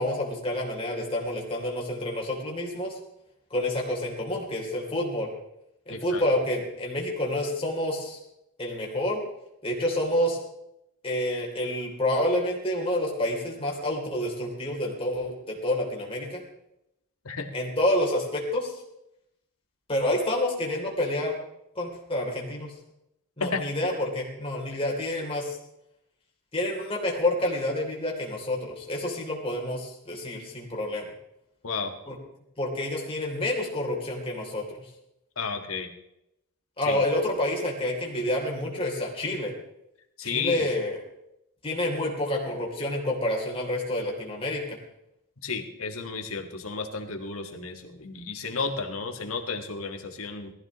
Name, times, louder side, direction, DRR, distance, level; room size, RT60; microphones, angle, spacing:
voice 1, 0.0-3.0 3.5-5.3 5.9-8.2 8.6-9.2 9.6-10.4 11.0-16.4 17.5-18.8 19.9-21.4 21.7-22.7 23.4-25.6 26.5-31.1 32.0-32.2 32.6-34.9 36.8-39.5 40.2-41.0 41.6-44.8, left 1 dB, 25° left, -1 dB, 3.1 m, -28 dB
voice 2, 5.9-6.2 17.2-17.5 23.4-23.6 24.7-24.8 31.6-31.9 35.3-35.9 36.9-37.0 40.2-40.7 45.4-50.5, left 4 dB, 70° left, 4 dB, 1.7 m, -32 dB
19.0 x 14.5 x 3.1 m, 0.83 s
head